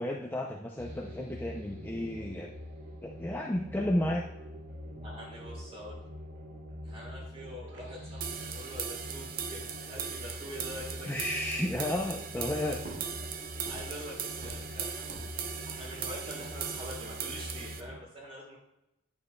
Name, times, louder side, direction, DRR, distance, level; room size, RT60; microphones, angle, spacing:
voice 1, 0.0-2.5 3.0-4.3 11.0-12.8, left 1 dB, 10° left, 0 dB, 0.4 m, -32 dB
sound 1, 0.8-18.0, equal, 90° right, 2.6 m, -44 dB
voice 2, 4.9-6.0 6.8-11.3 13.2-13.3 13.6-15.2 15.6-18.6, equal, 30° right, -3 dB, 3.2 m, -45 dB
sound 2, 8.2-17.8, right 7 dB, 45° right, 0.6 m, -39 dB
sound 3, 10.7-11.5 11.9-12.5 12.8-14.1 14.4-15.5, right 1 dB, 65° right, 3.3 m, -48 dB
9.7 x 9.2 x 2.2 m, 0.89 s
head